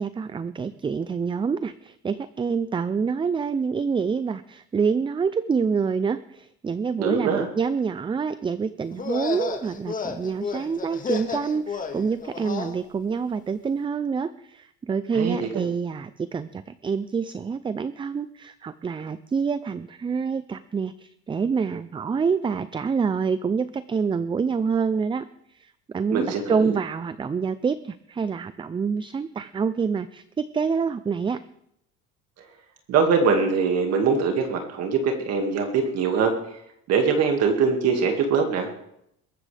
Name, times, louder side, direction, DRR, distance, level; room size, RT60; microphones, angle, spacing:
voice 1, 0.0-31.4, right 5 dB, 15° right, 14 dB, 0.5 m, -27 dB
voice 2, 7.0-7.5 15.1-15.6 26.1-26.8 32.9-36.3 36.9-38.7, right 5 dB, 55° right, 3 dB, 2.2 m, -22 dB
sound 1, 8.9-12.8, left 5 dB, 25° left, 1.8 m, -32 dB
22.0 x 13.5 x 3.4 m, 0.77 s
cardioid pair, 115°, 30 cm